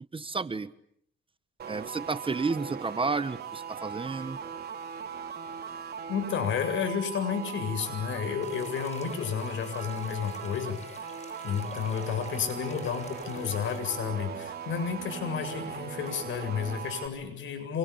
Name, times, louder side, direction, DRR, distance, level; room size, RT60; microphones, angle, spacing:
voice 1, 0.1-0.7 1.7-4.4, right 4 dB, 25° right, 13 dB, 1.4 m, -31 dB
sound 1, 1.6-17.1, right 7 dB, 55° right, 3.9 m, -39 dB
voice 2, 6.1-10.8 11.4-17.8, left 7 dB, 75° left, 7 dB, 7.9 m, -31 dB
sound 2, 8.4-13.8, left 4 dB, 35° left, 5.5 m, -49 dB
27.0 x 24.0 x 8.6 m, 0.70 s
cardioid pair, 90°, 20 cm